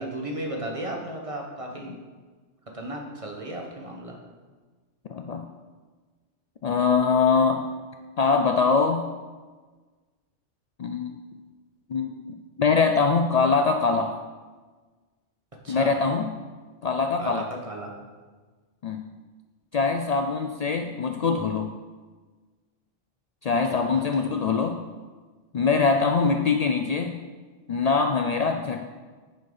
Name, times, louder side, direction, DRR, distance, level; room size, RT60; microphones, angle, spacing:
voice 1, 0.0-1.9 2.7-4.2 15.6-15.9 17.2-17.9 23.7-24.2, right 1 dB, 30° right, 0 dB, 1.2 m, -35 dB
voice 2, 5.1-5.5 6.6-7.6 8.2-9.1 10.8-11.2 11.9-14.2 15.7-16.4 16.8-17.5 18.8-19.1 19.7-21.8 23.4-24.8 25.5-27.2 27.7-28.9, left 4 dB, 85° left, 5 dB, 0.3 m, -23 dB
9.5 x 4.3 x 5.4 m, 1.4 s
omnidirectional pair, 1.2 m